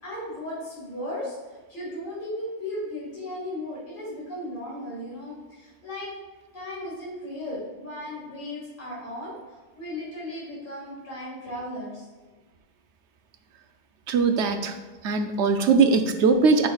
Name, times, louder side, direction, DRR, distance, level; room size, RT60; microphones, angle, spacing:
voice 1, 0.0-1.4 1.7-6.1 6.5-9.3 9.7-12.1, left 1 dB, 45° left, -6 dB, 2.2 m, -36 dB
voice 2, 14.1-14.7 15.0-16.7, right 4 dB, 85° right, 6 dB, 1.0 m, -20 dB
10.5 x 5.2 x 2.4 m, 1.3 s
omnidirectional pair, 1.1 m